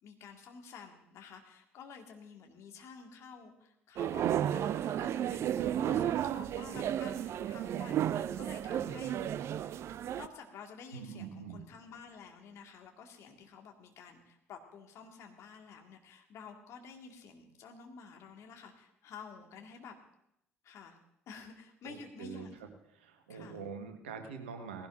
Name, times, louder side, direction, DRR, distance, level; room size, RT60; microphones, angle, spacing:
voice 1, 0.0-9.4 10.2-20.0 20.6-21.0 21.3-22.7 23.3-23.6, left 5 dB, 50° left, 3 dB, 1.8 m, -51 dB
sound 1, 4.0-10.3, right 10 dB, 45° right, 0.4 m, -33 dB
voice 2, 5.9-6.5 10.9-11.6 21.8-22.7 23.0-24.9, right 6 dB, 75° right, 6 dB, 1.4 m, -45 dB
19.0 x 16.0 x 2.6 m, 0.78 s
figure-of-eight pair, 50°, 6 cm